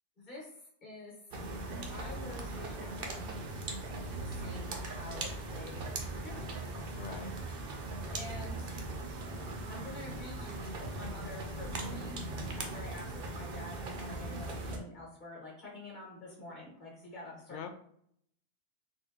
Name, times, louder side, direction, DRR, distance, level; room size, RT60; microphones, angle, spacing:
voice 1, 0.2-1.1 1.9-3.3 4.2-5.9 6.1-6.5 8.1-8.7 9.7-12.2 12.6-17.8, left 1 dB, 45° left, -4 dB, 1.5 m, -47 dB
sound 1, 1.3-14.8, right 2 dB, 60° right, 0.8 m, -39 dB
voice 2, 6.9-7.3 12.5-12.7 17.5-17.8, left 7 dB, 85° left, 7 dB, 0.9 m, -44 dB
3.9 x 2.2 x 3.5 m, 0.68 s
omnidirectional pair, 1.2 m